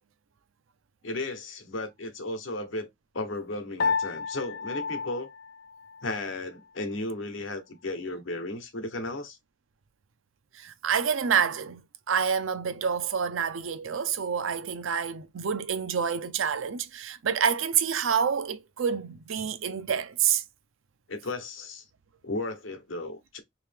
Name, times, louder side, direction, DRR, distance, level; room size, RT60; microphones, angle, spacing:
voice 1, 1.0-2.9 3.1-5.3 6.0-9.4 21.1-21.8 22.2-23.4, left 2 dB, 75° left, 1.0 m, -34 dB
Piano, 3.8-6.3, left 5 dB, 55° left, 0.5 m, -31 dB
voice 2, 10.5-11.8 12.1-20.4, right 7 dB, 85° right, 0.5 m, -28 dB
3.0 x 2.8 x 3.4 m
head